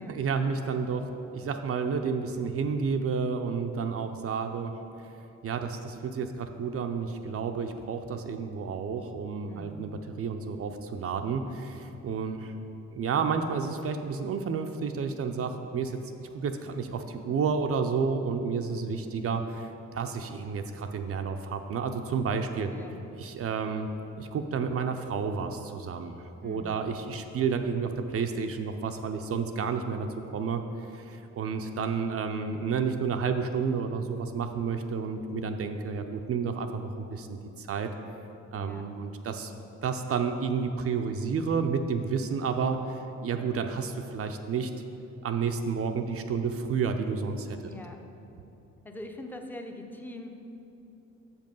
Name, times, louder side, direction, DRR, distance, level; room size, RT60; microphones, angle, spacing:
voice 1, 0.0-4.7 5.4-12.5 12.9-16.0 16.3-22.7 23.2-23.9 24.2-30.6 30.9-37.9 38.5-39.5 39.8-44.7 45.2-47.7, right 5 dB, 50° right, 6 dB, 0.5 m, -31 dB
voice 2, 9.5-9.9 22.7-23.0 26.4-26.9 38.5-38.9 47.6-48.0 48.8-50.3, left 1 dB, 5° left, 3 dB, 0.6 m, -43 dB
6.8 x 5.4 x 5.3 m, 2.8 s
cardioid pair, 90°, 30 cm